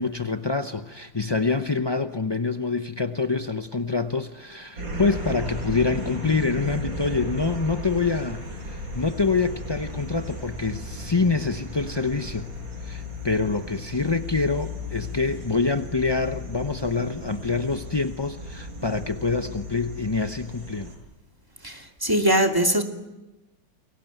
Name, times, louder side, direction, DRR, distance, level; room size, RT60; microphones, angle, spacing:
voice 1, 0.0-12.5 12.8-20.9, left 4 dB, 35° left, 8 dB, 0.4 m, -26 dB
sound 1, 4.8-21.0, left 1 dB, 75° right, 7.9 m, -35 dB
voice 2, 21.6-22.8, right 1 dB, 10° right, 4 dB, 2.5 m, -21 dB
28.5 x 22.5 x 9.2 m, 1.0 s
omnidirectional pair, 2.0 m